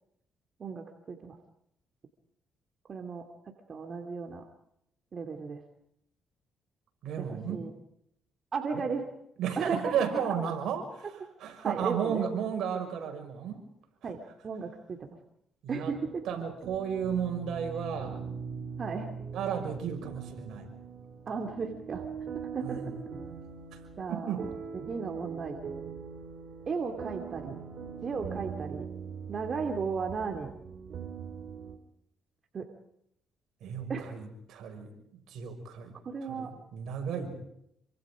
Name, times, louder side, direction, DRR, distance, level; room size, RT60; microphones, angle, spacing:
voice 1, 0.6-1.4 2.9-3.2 3.7-4.4 5.1-5.6 7.2-7.7 8.5-9.0 9.6-9.9 11.6-12.2 14.0-15.1 15.7-16.2 18.8-19.1 21.3-22.0 22.3-22.8 24.0-24.4 24.9-25.6 26.7-27.6 28.0-28.9 29.3-30.5 32.5-32.7 33.9-34.1 36.1-36.5, right 5 dB, 45° right, 4 dB, 2.7 m, -35 dB
voice 2, 7.0-7.6 9.4-13.6 15.6-16.0 16.2-18.2 19.3-20.7 22.6-23.0 23.7-23.8 24.1-24.4 33.6-35.9 36.2-37.4, right 7 dB, 80° right, 4 dB, 5.8 m, -34 dB
sound 1, 15.9-31.8, right 6 dB, 65° right, 2.9 m, -42 dB
28.0 x 25.0 x 5.1 m, 0.75 s
cardioid pair, 90°, 0 cm